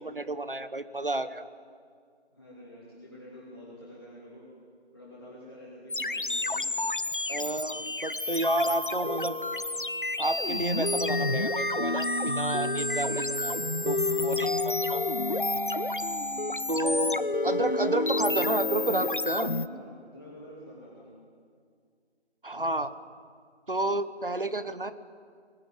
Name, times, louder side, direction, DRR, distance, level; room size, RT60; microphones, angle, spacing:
voice 1, 0.0-1.4 7.3-9.4 10.2-13.5 13.8-14.0 14.2-15.0 16.7-19.5 22.4-22.9 23.7-24.9, right 1 dB, 50° right, 13 dB, 1.2 m, -30 dB
voice 2, 2.3-4.5 4.9-6.7 12.9-13.7 14.0-14.4 16.1-17.4 19.5-21.1, left 1 dB, 20° left, -7 dB, 2.8 m, -47 dB
sound 1, 5.9-19.7, left 2 dB, 50° left, 0.5 m, -29 dB
20.5 x 16.0 x 9.5 m, 2.1 s
figure-of-eight pair, 180°, 33 cm